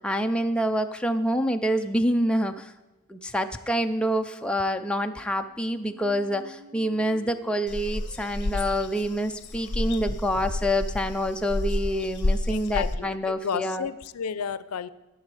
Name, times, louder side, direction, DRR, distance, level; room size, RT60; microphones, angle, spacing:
voice 1, 0.0-2.7 3.1-13.9, equal, 5° left, 5 dB, 0.4 m, -27 dB
sound 1, 5.0-10.9, left 2 dB, 60° right, 2.5 m, -52 dB
sound 2, 7.7-13.0, left 2 dB, 55° left, 0.8 m, -30 dB
voice 2, 10.1-10.4 12.5-13.2 13.4-14.9, left 6 dB, 90° left, 17 dB, 0.5 m, -32 dB
19.0 x 6.9 x 4.8 m, 1.0 s
head